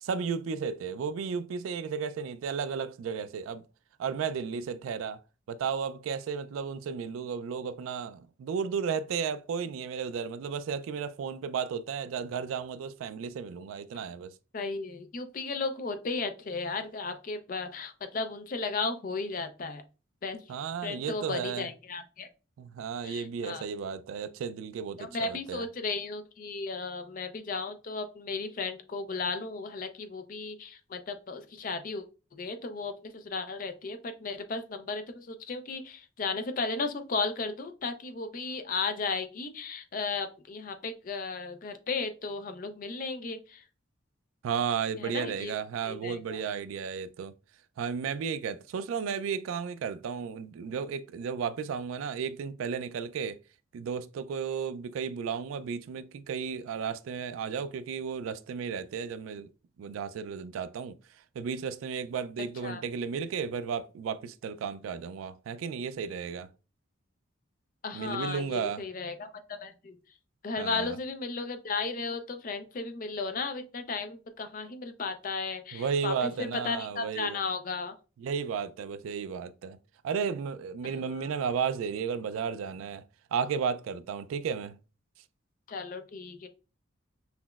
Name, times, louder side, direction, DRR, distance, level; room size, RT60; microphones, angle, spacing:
voice 1, 0.0-3.6 4.0-5.2 5.5-14.3 20.5-21.7 22.6-25.6 44.4-47.3 47.8-53.4 53.7-59.5 59.8-61.0 61.4-66.5 67.9-68.8 70.6-71.0 75.7-77.4 78.2-79.8 80.0-83.0 83.3-84.8, right 6 dB, 85° right, 0.3 m, -33 dB
voice 2, 14.5-19.8 20.2-20.4 20.8-22.3 23.0-23.7 25.0-32.0 32.3-43.6 45.0-45.5 45.8-46.4 62.5-62.8 67.8-69.3 69.6-70.0 70.4-77.9 80.8-81.3 85.7-86.5, left 4 dB, 40° left, 0.4 m, -35 dB
5.7 x 2.0 x 2.3 m
head